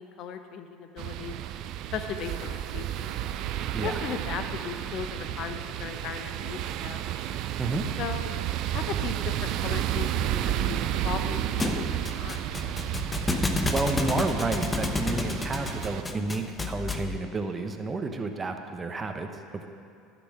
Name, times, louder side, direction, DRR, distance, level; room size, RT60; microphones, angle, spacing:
voice 1, 0.0-1.4 1.9-3.2 3.8-7.0 8.0-8.3 8.6-12.5, left 7 dB, 55° left, 8 dB, 0.9 m, -37 dB
sound 1, 1.0-16.0, right 11 dB, 55° right, 0.4 m, -32 dB
Thump thud, 11.6-17.2, left 3 dB, 15° left, 0.9 m, -30 dB
voice 2, 13.7-19.7, right 3 dB, 25° right, 6 dB, 1.1 m, -31 dB
11.5 x 6.1 x 7.4 m, 2.4 s
hypercardioid pair, 70°, 0 cm